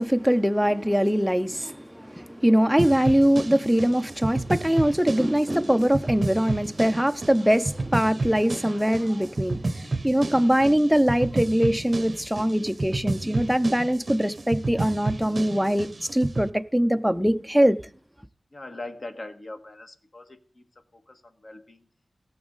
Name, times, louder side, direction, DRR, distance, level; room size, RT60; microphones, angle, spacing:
voice 1, 0.0-17.8, equal, ahead, 0.5 m, -22 dB
sound 1, 2.8-16.5, right 2 dB, 45° right, 0.7 m, -31 dB
voice 2, 18.5-20.7 20.9-21.9, left 2 dB, 50° left, 1.6 m, -41 dB
18.0 x 7.9 x 4.0 m
wide cardioid pair, 95°, 0 cm